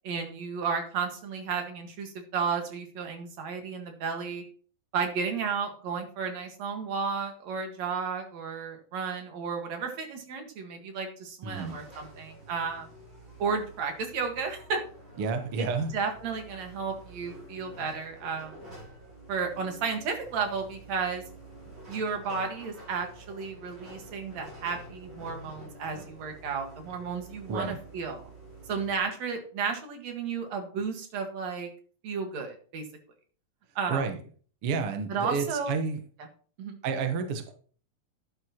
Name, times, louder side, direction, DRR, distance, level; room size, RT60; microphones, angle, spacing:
voice 1, 0.0-4.4 4.9-12.9 13.4-14.8 15.6-15.7 15.9-18.6 19.3-21.2 21.9-28.3 28.7-31.7 32.0-32.8 33.8-34.1 35.1-35.8 36.6-36.8, right 5 dB, 55° right, 5 dB, 2.5 m, -33 dB
voice 2, 11.4-11.8 15.2-15.9 27.5-27.8 33.9-34.2 34.6-36.0 36.8-37.5, right 5 dB, 75° right, 6 dB, 1.3 m, -30 dB
sound 1, 11.5-29.0, right 1 dB, 15° right, 6.3 m, -48 dB
12.0 x 9.4 x 2.9 m, 0.43 s
omnidirectional pair, 4.2 m